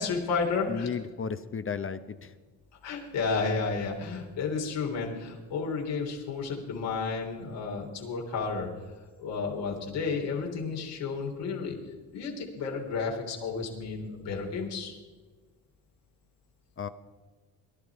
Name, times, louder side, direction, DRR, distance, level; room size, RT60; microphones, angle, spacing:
voice 1, 0.0-0.9 2.8-8.7 9.2-11.8 12.1-14.9, left 4 dB, 80° left, -1 dB, 3.3 m, -32 dB
voice 2, 0.7-2.3 16.8-16.9, left 6 dB, 30° left, 10 dB, 0.8 m, -34 dB
19.5 x 11.0 x 4.8 m, 1.4 s
cardioid pair, 95°, 42 cm